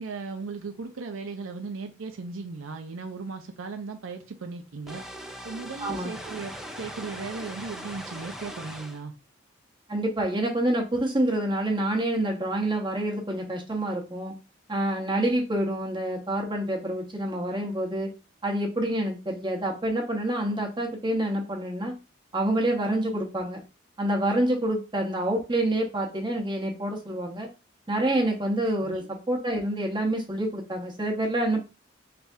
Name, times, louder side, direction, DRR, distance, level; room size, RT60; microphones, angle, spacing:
voice 1, 0.0-5.0 5.4-9.1 28.8-29.1, right 4 dB, 90° right, 6 dB, 0.5 m, -37 dB
sound 1, 4.9-9.0, equal, ahead, 0.3 m, -40 dB
voice 2, 5.8-6.2 9.9-14.3 14.7-18.1 18.4-21.9 22.3-23.6 24.0-27.5 27.9-31.6, right 1 dB, 25° right, 0 dB, 0.9 m, -27 dB
3.4 x 3.3 x 2.6 m, 0.29 s
head